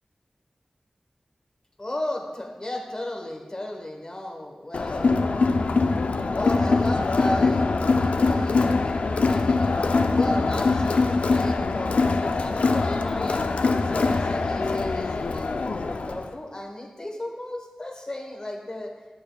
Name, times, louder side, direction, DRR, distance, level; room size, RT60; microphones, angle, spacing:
voice 1, 1.8-5.3 6.3-13.5 13.8-18.9, left 1 dB, 35° left, 2 dB, 1.0 m, -34 dB
Crowd, 4.7-16.3, left 3 dB, 85° left, 0.4 m, -23 dB
11.0 x 6.7 x 2.3 m, 1.3 s
wide cardioid pair, 75°, 2 cm